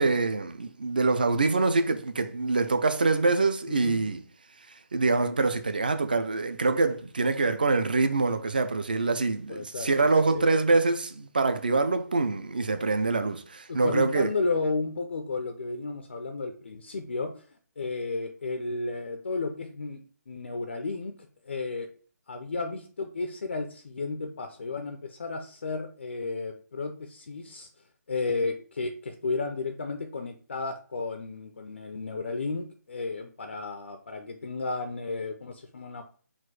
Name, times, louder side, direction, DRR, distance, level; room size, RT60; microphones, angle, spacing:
voice 1, 0.0-4.2 4.9-14.3, right 3 dB, 30° right, 0.3 m, -25 dB
voice 2, 3.7-4.1 9.5-10.5 13.7-17.4 17.8-20.0 20.3-21.9 22.3-27.7 28.1-36.0, left 3 dB, 40° left, 0.4 m, -33 dB
4.2 x 2.5 x 4.6 m
hypercardioid pair, 180°, 10 cm